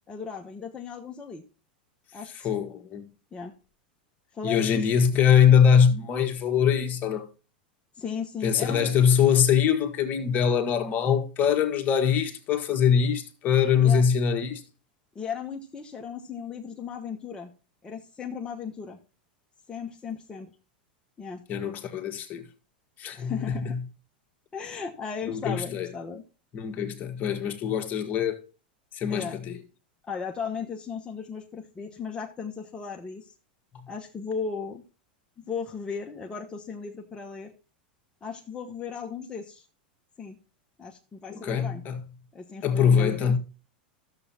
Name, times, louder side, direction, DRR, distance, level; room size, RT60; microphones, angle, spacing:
voice 1, 0.1-1.4 2.1-2.5 3.3-3.5 4.3-4.8 8.0-8.9 13.8-14.0 15.1-17.5 17.8-19.0 19.7-20.5 21.2-21.4 23.1-23.8 24.5-26.2 29.1-29.4 30.1-33.3 33.9-34.8 35.4-37.5 38.2-39.6 40.2-40.4 40.8-41.8 42.3-43.4, left 6 dB, 20° left, 1.1 m, -36 dB
voice 2, 2.4-3.1 4.4-7.2 8.4-14.6 21.5-22.4 23.0-23.3 23.6-23.8 25.3-25.9 26.5-28.4 28.9-29.6 41.3-42.0 42.6-43.4, left 7 dB, 40° left, 1.6 m, -23 dB
13.5 x 7.0 x 2.8 m
hypercardioid pair, 105°, 5 cm